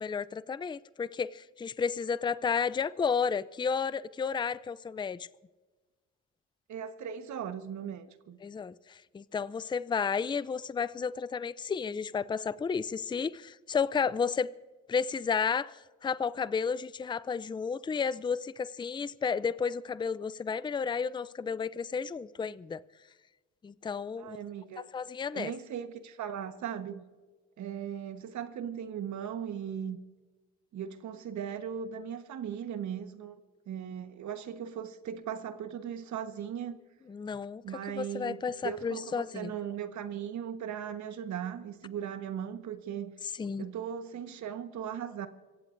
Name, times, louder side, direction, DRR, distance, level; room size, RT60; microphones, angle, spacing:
voice 1, 0.0-5.3 8.4-14.5 14.9-22.8 23.6-24.4 24.8-25.5 37.1-37.6 37.9-39.5 43.4-43.7, left 6 dB, 15° left, 0.4 m, -32 dB
voice 2, 6.7-8.4 24.2-24.9 25.3-27.0 27.6-30.0 30.7-33.4 33.7-36.8 37.6-38.4 38.6-43.1 43.6-45.3, right 8 dB, 70° right, 1.3 m, -38 dB
25.5 x 16.0 x 2.6 m
cardioid pair, 90°, 30 cm